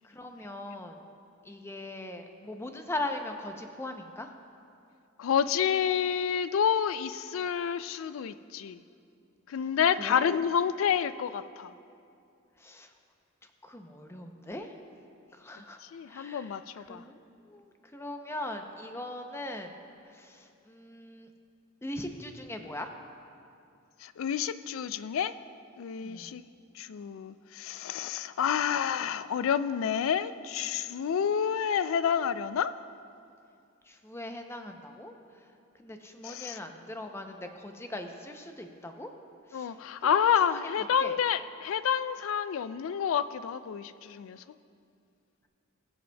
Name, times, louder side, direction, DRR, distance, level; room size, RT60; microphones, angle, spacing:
voice 1, 0.0-1.0 1.4-4.3 10.0-10.3 12.6-12.9 13.6-14.7 15.4-15.8 16.1-16.5 16.9-17.2 17.5-19.7 20.2-21.3 21.8-22.9 26.0-26.3 33.9-35.1 35.8-39.1 39.5-39.7 40.0-40.1 40.5-40.6 41.0-41.1, left 1 dB, 10° left, 5 dB, 0.5 m, -40 dB
voice 2, 5.2-8.8 9.5-11.7 15.8-17.0 24.0-25.3 25.8-26.4 26.7-32.7 36.2-36.6 39.5-44.4, left 8 dB, 70° left, 14 dB, 0.3 m, -29 dB
20.5 x 7.7 x 2.2 m, 2.5 s
head